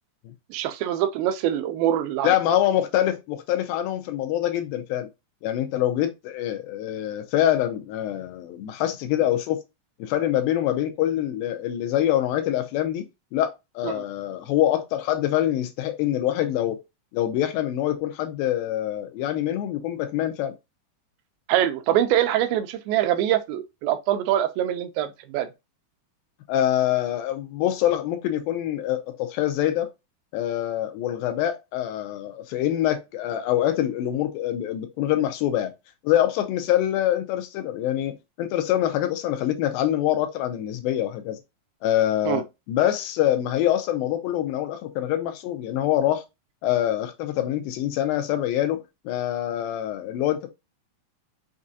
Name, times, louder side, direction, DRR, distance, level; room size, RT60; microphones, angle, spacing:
voice 1, 0.5-2.3 13.8-14.0 21.5-25.5 42.3-42.4, right 11 dB, 85° right, 2.4 m, -24 dB
voice 2, 2.2-5.1 5.4-9.6 10.0-13.1 13.3-16.8 17.1-20.5 26.5-29.9 30.3-35.7 36.0-41.4 41.8-46.2 46.6-50.5, left 12 dB, 85° left, 2.4 m, -25 dB
6.3 x 2.5 x 2.6 m
omnidirectional pair, 4.2 m